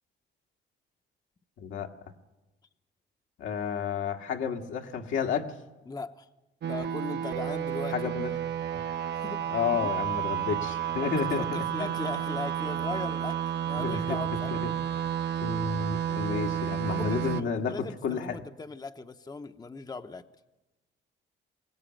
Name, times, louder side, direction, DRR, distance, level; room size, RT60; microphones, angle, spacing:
voice 1, 1.6-1.9 3.4-5.5 7.9-8.3 9.5-11.9 13.8-14.2 14.5-14.7 15.4-18.4, left 6 dB, 80° left, 3 dB, 1.8 m, -31 dB
voice 2, 5.9-6.3 6.7-8.1 9.1-9.9 10.4-10.5 11.0-13.4 13.6-14.5 16.9-20.2, left 4 dB, 20° left, 8 dB, 0.8 m, -39 dB
sound 1, 6.6-17.4, right 10 dB, 60° right, 0.9 m, -31 dB
22.5 x 17.0 x 9.0 m, 1.1 s
cardioid pair, 90°, 20 cm